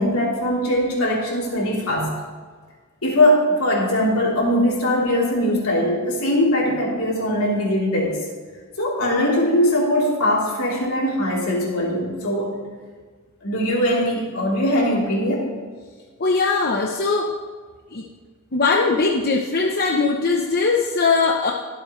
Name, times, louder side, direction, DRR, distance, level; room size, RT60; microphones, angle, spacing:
voice 1, 0.0-2.1 3.0-8.2 8.8-12.6 13.4-15.5, left 1 dB, 80° left, -4 dB, 3.6 m, -21 dB
voice 2, 16.2-17.3 17.9-18.0 18.5-21.5, left 4 dB, 45° left, 0 dB, 0.9 m, -20 dB
23.0 x 7.8 x 3.2 m, 1.5 s
head